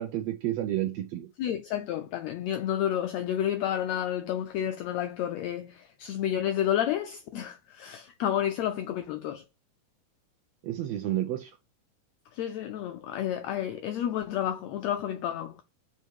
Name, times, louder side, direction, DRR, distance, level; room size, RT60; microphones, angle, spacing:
voice 1, 0.0-1.3 10.6-11.5, right 13 dB, 75° right, 1.6 m, -30 dB
voice 2, 1.4-9.4 12.3-15.6, left 10 dB, 85° left, 1.5 m, -30 dB
5.5 x 5.0 x 4.6 m
omnidirectional pair, 3.7 m